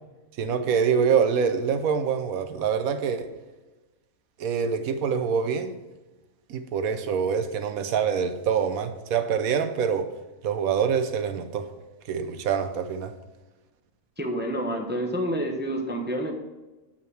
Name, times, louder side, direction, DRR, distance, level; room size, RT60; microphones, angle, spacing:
voice 1, 0.4-3.3 4.4-5.7 6.5-10.1 10.4-11.7 12.0-13.1, right 7 dB, 85° right, 9 dB, 1.2 m, -25 dB
voice 2, 14.2-16.3, equal, 10° right, 2 dB, 0.7 m, -28 dB
8.4 x 6.0 x 4.6 m, 1.1 s
omnidirectional pair, 1.4 m